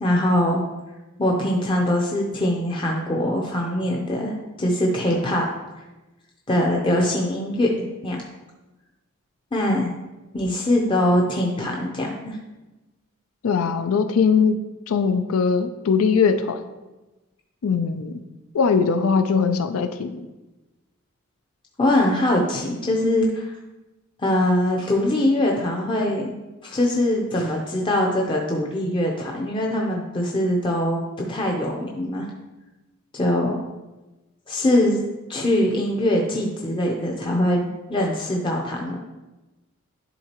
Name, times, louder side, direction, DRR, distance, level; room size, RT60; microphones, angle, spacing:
voice 1, 0.0-0.7 1.2-5.4 6.5-7.7 8.0-8.2 9.5-9.9 10.3-12.4 21.8-23.5 24.2-26.4 26.6-32.3 33.1-33.6 34.5-35.0 35.3-39.0, left 1 dB, 25° left, -1 dB, 0.6 m, -22 dB
voice 2, 13.4-14.6 14.9-16.6 17.6-18.2 18.5-20.3, left 5 dB, 80° left, 8 dB, 0.4 m, -21 dB
11.0 x 3.7 x 2.9 m, 1.1 s
head